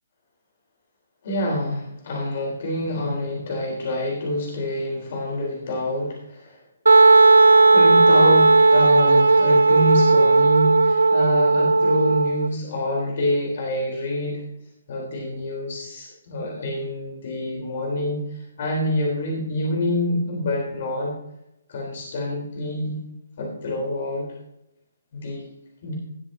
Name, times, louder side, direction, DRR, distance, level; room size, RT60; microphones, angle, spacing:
voice 1, 1.2-6.6 7.7-14.4 14.9-21.1 21.7-22.9 23.4-24.3 25.1-25.5 25.8-25.9, left 1 dB, 50° left, -2 dB, 3.9 m, -27 dB
Wind instrument woodwind instrument, 6.9-12.5, right 3 dB, 80° right, 0.3 m, -15 dB
19.0 x 8.0 x 2.8 m, 0.81 s
figure-of-eight pair, 140°, 0 cm